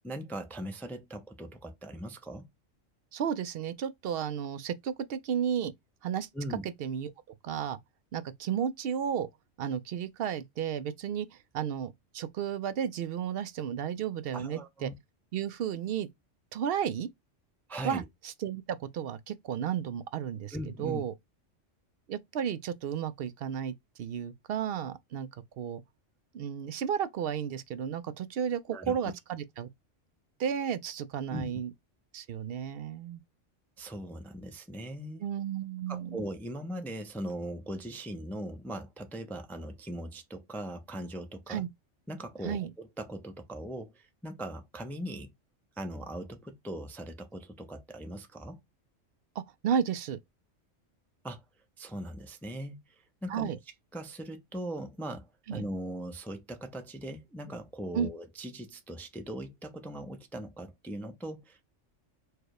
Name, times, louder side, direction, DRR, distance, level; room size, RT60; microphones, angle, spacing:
voice 1, 0.0-2.5 6.3-6.6 14.3-15.0 17.7-18.0 20.5-21.0 28.7-29.1 31.3-31.6 33.8-35.3 35.9-41.6 42.1-45.3 45.8-48.6 51.2-51.4 51.8-53.6 53.9-61.6, right 1 dB, ahead, 0.5 m, -40 dB
voice 2, 3.1-5.7 6.0-6.3 6.6-7.1 7.4-7.8 8.1-9.3 9.6-11.3 11.5-14.9 15.3-16.1 16.5-17.1 17.8-21.1 22.1-25.3 25.6-25.8 26.3-29.7 30.4-31.7 32.1-33.2 35.2-36.2 41.5-41.7 42.4-42.7 49.4-50.2 53.3-53.6 55.5-55.6 57.9-58.1, right 8 dB, 60° right, 0.6 m, -33 dB
4.6 x 2.3 x 4.7 m
omnidirectional pair, 1.3 m